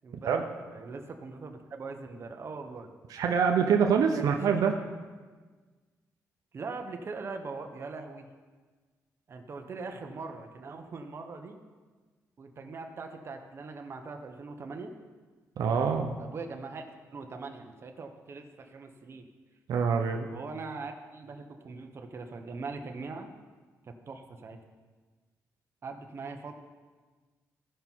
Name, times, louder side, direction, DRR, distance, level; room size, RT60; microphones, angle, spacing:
voice 1, 0.0-2.9 4.1-4.6 6.5-8.3 9.3-11.6 12.4-14.9 16.2-19.3 20.3-23.3 23.8-24.6 25.8-26.6, right 4 dB, 45° right, 4 dB, 1.0 m, -41 dB
voice 2, 3.1-4.7 15.6-16.2 19.7-20.3, right 6 dB, 80° right, 4 dB, 0.8 m, -25 dB
15.5 x 5.5 x 4.6 m, 1.4 s
cardioid pair, 125°, 6 cm